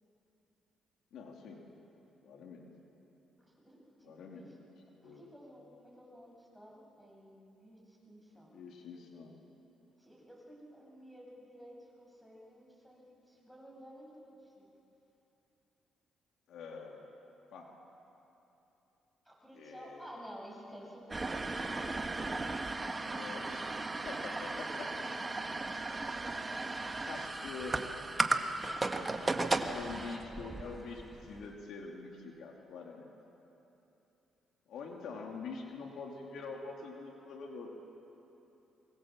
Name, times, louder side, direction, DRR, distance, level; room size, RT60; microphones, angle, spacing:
voice 1, 1.1-1.6 2.2-2.7 4.0-4.5 4.9-5.3 8.3-9.3 16.5-17.7 19.5-20.1 23.1-23.7 24.0-24.9 27.1-27.8 28.2-28.3 29.7-33.1 34.7-37.7, left 4 dB, 75° left, 0 dB, 2.8 m, -45 dB
voice 2, 3.5-4.5 5.0-8.5 10.0-14.6 19.2-21.7 24.2-24.4, equal, ahead, -3 dB, 7.8 m, -53 dB
sound 1, 21.1-31.5, right 3 dB, 25° right, 1.4 m, -36 dB
24.5 x 23.5 x 7.5 m, 3.0 s
cardioid pair, 90°, 0 cm